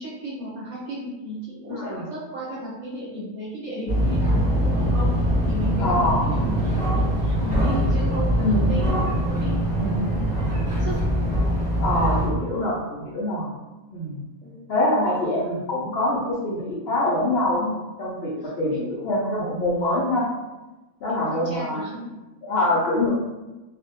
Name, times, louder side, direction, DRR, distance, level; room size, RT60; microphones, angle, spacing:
voice 1, 0.0-9.1 9.4-9.5 10.1-10.4 10.6-10.9 12.2-12.5 14.4-14.6 15.0-15.3 18.4-19.0 21.1-22.2, right 1 dB, 45° right, -9 dB, 0.7 m, -34 dB
voice 2, 1.7-2.0 5.8-6.3 8.4-9.2 9.8-10.1 11.8-13.5 13.9-14.2 14.7-20.3 21.0-21.8 22.4-23.1, left 1 dB, 65° left, -6 dB, 0.7 m, -25 dB
sound 1, 3.9-12.3, equal, 35° left, 0.9 m, -22 dB
2.4 x 2.1 x 2.7 m, 1.1 s
omnidirectional pair, 1.4 m